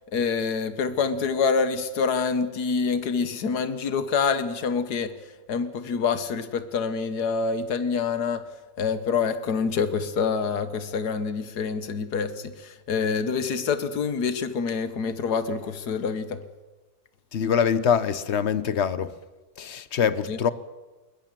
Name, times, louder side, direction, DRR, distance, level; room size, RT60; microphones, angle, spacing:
voice 1, 0.1-5.1 5.5-8.5 8.8-16.4 20.3-20.4, left 5 dB, 85° left, 1.8 m, -26 dB
voice 2, 17.3-19.1 19.6-20.5, left 7 dB, 50° left, 1.2 m, -24 dB
21.0 x 20.5 x 7.6 m
omnidirectional pair, 1.7 m